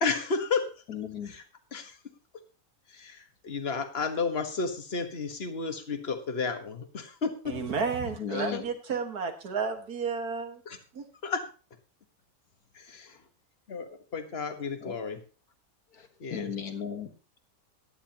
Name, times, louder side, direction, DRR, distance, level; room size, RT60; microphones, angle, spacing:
voice 1, 0.0-0.8 1.2-1.4 1.7-2.0 2.9-7.6 8.5-8.6 10.7-10.8 11.2-11.5 12.7-13.2 13.7-15.2 16.2-16.5, left 4 dB, 45° left, 7 dB, 1.6 m, -32 dB
voice 2, 0.9-1.3 8.2-8.6 14.8-14.9 16.3-17.1, left 7 dB, 80° left, 6 dB, 2.0 m, -34 dB
voice 3, 7.5-10.6 10.9-11.1, right 5 dB, 85° right, 5 dB, 2.2 m, -32 dB
16.5 x 11.0 x 2.9 m, 0.36 s
omnidirectional pair, 1.6 m